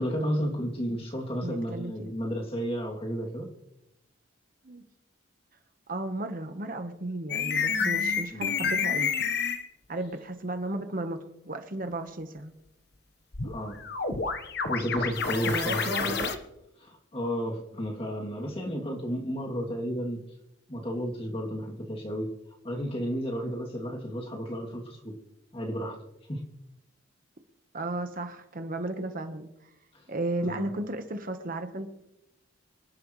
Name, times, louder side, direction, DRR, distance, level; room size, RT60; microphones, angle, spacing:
voice 1, 0.0-3.5 8.3-8.6 13.4-13.8 14.6-16.1 16.8-20.2 20.7-22.3 22.6-25.1 25.5-26.0 26.3-26.4 30.4-30.7, equal, 30° left, -1 dB, 2.7 m, -32 dB
voice 2, 1.4-2.1 4.6-4.8 5.9-9.1 9.9-12.5 15.4-16.4 27.7-29.5 30.1-31.9, right 2 dB, 45° right, 7 dB, 1.2 m, -34 dB
sound 1, 7.3-9.6 13.3-16.3, left 5 dB, 55° left, 1.2 m, -29 dB
25.5 x 11.5 x 3.2 m, 0.89 s
head